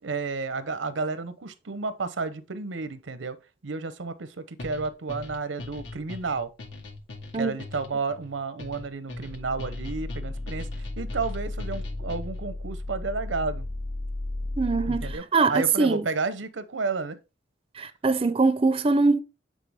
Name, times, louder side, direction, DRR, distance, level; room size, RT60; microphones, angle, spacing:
voice 1, 0.0-3.4 3.6-6.5 7.3-10.7 11.0-13.7 14.8-17.2, right 4 dB, 85° right, 0.7 m, -31 dB
sound 1, 4.6-12.5, left 2 dB, 75° left, 1.3 m, -41 dB
sound 2, 9.2-15.2, left 2 dB, 45° left, 2.3 m, -34 dB
voice 2, 14.6-16.0 17.8-19.2, right 3 dB, 30° right, 0.4 m, -23 dB
8.3 x 3.8 x 3.4 m
head